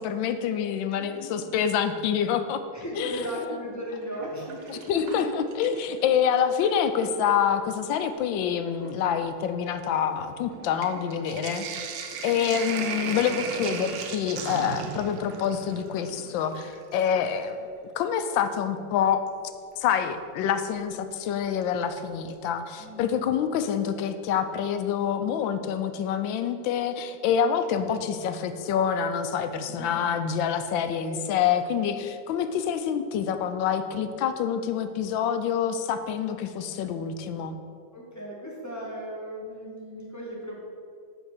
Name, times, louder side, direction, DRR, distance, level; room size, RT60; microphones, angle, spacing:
voice 1, 0.0-2.6 3.0-3.1 4.7-5.3 5.6-17.6 18.0-19.2 19.8-37.6, left 8 dB, 85° left, 9 dB, 1.3 m, -27 dB
voice 2, 0.8-1.7 2.7-5.2 11.6-11.8 12.3-12.6 13.0-13.2 22.8-23.3 26.8-26.9 29.7-30.3 31.0-31.3 37.9-40.6, equal, 10° left, -4 dB, 1.4 m, -38 dB
Sink (filling or washing), 4.0-6.0 6.4-7.2 8.0-8.1 8.4-17.5 19.3-19.4 21.2-21.6 22.0-22.1 22.3-22.4, right 6 dB, 80° right, 1.4 m, -37 dB
6.5 x 5.1 x 6.4 m, 2.3 s
omnidirectional pair, 2.0 m